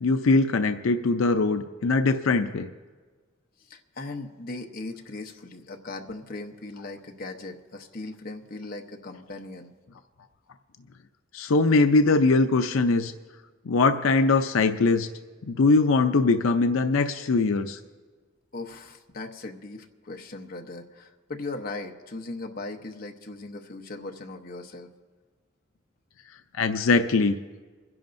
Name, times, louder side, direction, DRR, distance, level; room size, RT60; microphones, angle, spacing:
voice 1, 0.0-2.7 11.3-13.1 13.7-15.1 15.4-17.8 26.6-27.4, left 3 dB, 85° left, 8 dB, 0.5 m, -21 dB
voice 2, 3.6-9.7 18.5-24.9, left 2 dB, 45° left, 3 dB, 0.9 m, -38 dB
28.5 x 11.0 x 2.6 m, 1.4 s
head